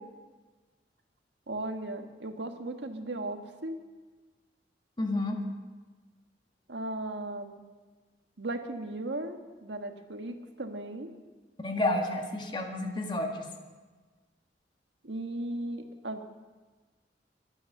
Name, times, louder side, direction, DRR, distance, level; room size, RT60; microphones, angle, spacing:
voice 1, 1.5-3.8 6.7-7.6 8.4-11.1 15.0-16.2, right 2 dB, 75° right, 6 dB, 1.5 m, -36 dB
voice 2, 5.0-5.4 11.6-13.5, left 1 dB, 25° left, 3 dB, 1.8 m, -30 dB
23.5 x 9.5 x 6.5 m, 1.3 s
head